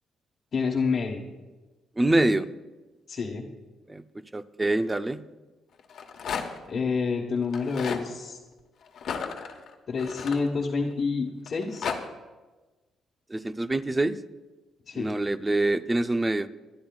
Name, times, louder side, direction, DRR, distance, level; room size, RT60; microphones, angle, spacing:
voice 1, 0.5-1.2 3.1-3.5 6.7-8.4 9.9-11.9 14.9-15.1, left 4 dB, 45° left, -2 dB, 1.3 m, -28 dB
voice 2, 2.0-2.5 3.9-4.0 4.3-5.2 13.3-14.2 14.9-16.5, right 2 dB, 15° right, 12 dB, 0.6 m, -25 dB
Rattle, 5.8-6.7 7.4-8.0 9.0-10.9 11.5-12.0, left 6 dB, 65° left, 1.3 m, -34 dB
25.5 x 12.0 x 2.4 m, 1.2 s
cardioid pair, 90°, 0 cm